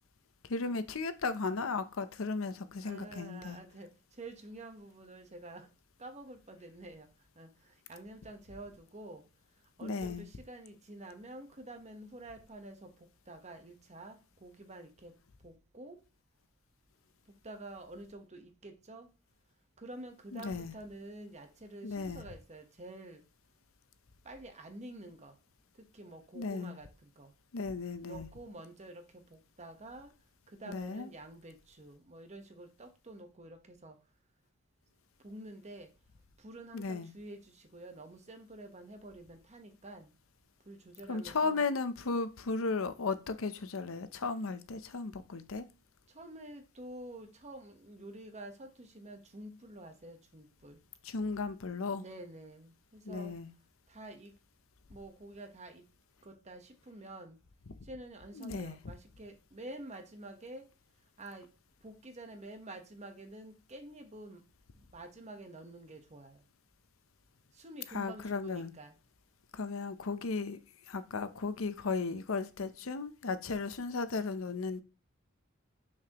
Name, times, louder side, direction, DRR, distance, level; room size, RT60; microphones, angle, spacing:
voice 1, 0.4-3.6 9.8-10.2 20.3-20.7 21.8-22.2 26.3-26.7 27.5-28.3 30.7-31.1 36.7-37.1 41.1-45.6 51.0-52.0 53.0-53.5 57.7-57.8 58.4-58.8 67.9-68.7 69.5-70.6 70.9-74.8, left 4 dB, 75° left, 0.7 m, -35 dB
voice 2, 2.8-5.7 6.0-7.1 7.4-9.2 9.8-15.1 15.4-16.0 17.4-19.1 19.8-23.2 24.2-25.4 25.8-27.3 28.0-30.1 30.5-34.0 35.2-35.9 36.4-40.1 40.7-41.6 46.1-50.8 51.9-53.3 53.9-54.3 54.9-55.8 56.2-57.4 57.8-60.7 61.2-61.5 61.8-64.4 64.9-66.4 67.5-68.9, right 1 dB, 35° right, 1.1 m, -48 dB
6.7 x 6.4 x 3.0 m
head